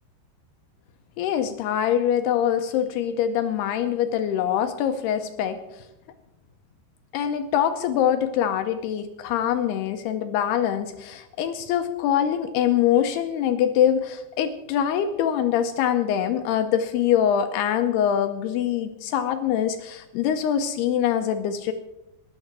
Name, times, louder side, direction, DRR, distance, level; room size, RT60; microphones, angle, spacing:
voice 1, 1.2-5.8 7.1-21.7, left 9 dB, 80° left, 8 dB, 2.4 m, -24 dB
19.0 x 12.0 x 4.7 m, 0.92 s
omnidirectional pair, 5.3 m